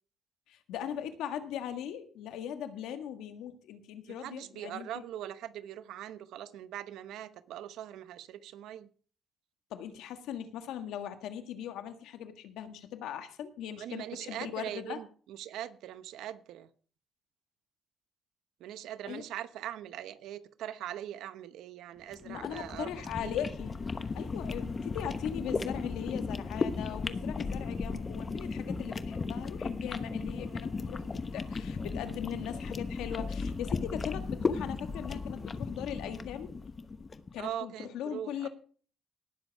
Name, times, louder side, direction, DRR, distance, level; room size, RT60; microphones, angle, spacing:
voice 1, 0.5-5.0 9.7-15.0 19.0-19.2 22.2-23.7 24.1-36.5 37.3-38.5, left 9 dB, 90° left, 8 dB, 1.7 m, -39 dB
voice 2, 4.1-8.9 13.8-16.7 18.6-23.3 37.4-38.5, right 11 dB, 85° right, 12 dB, 1.0 m, -41 dB
sound 1, 22.1-37.3, left 4 dB, 35° left, 1.0 m, -35 dB
18.5 x 7.4 x 4.7 m, 0.42 s
cardioid pair, 100°, 0 cm